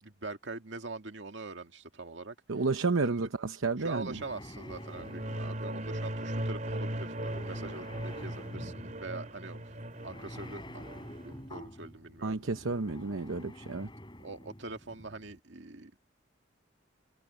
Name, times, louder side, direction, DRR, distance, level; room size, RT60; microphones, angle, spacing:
voice 1, 0.0-2.4 3.0-3.3 3.8-9.7 10.0-10.8 11.2-12.4 14.2-16.0, right 3 dB, 65° right, 2.2 m, -43 dB
voice 2, 2.5-4.2 12.2-13.9, right 3 dB, 90° right, 0.9 m, -31 dB
sound 1, 3.6-15.4, left 1 dB, 25° left, 5.2 m, -49 dB
sound 2, 4.7-11.3, right 1 dB, 40° right, 3.4 m, -38 dB
head